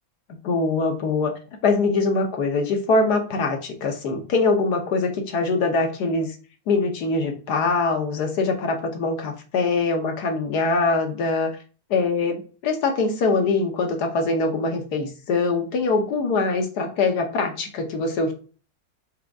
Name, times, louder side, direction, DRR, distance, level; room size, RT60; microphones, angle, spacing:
voice 1, 0.4-1.3 1.6-6.3 6.7-11.5 11.9-18.3, left 3 dB, 60° left, 4 dB, 1.3 m, -23 dB
5.2 x 2.8 x 3.4 m, 0.38 s
omnidirectional pair, 2.1 m